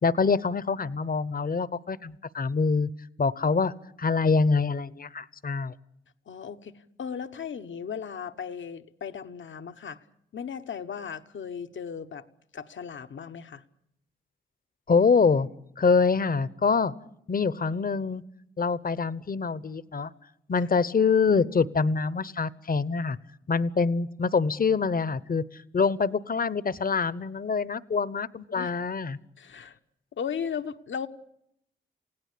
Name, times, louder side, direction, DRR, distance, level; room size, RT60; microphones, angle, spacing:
voice 1, 0.0-2.9 3.2-5.7 14.9-15.5 15.8-16.9 17.3-18.2 18.6-20.1 20.5-23.2 23.5-25.4 25.7-29.2, left 5 dB, 45° left, 18 dB, 1.0 m, -25 dB
voice 2, 6.3-10.0 10.3-12.2 12.5-13.6 20.6-20.7 28.5-28.7 29.4-29.8 30.1-31.1, left 7 dB, 70° left, 9 dB, 1.2 m, -36 dB
28.5 x 17.0 x 8.5 m, 0.78 s
cardioid pair, 50°, 20 cm